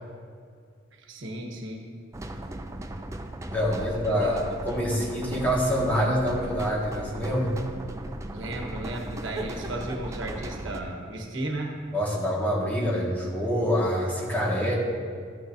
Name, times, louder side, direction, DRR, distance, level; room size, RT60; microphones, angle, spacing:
voice 1, 0.9-1.9 3.6-4.4 8.3-11.8, right 1 dB, 80° right, 2 dB, 1.2 m, -35 dB
sound 1, 2.1-10.8, right 1 dB, 15° right, 0.4 m, -37 dB
voice 2, 3.5-7.5 11.9-14.7, equal, 10° left, -5 dB, 1.7 m, -26 dB
13.0 x 9.5 x 2.6 m, 2.1 s
head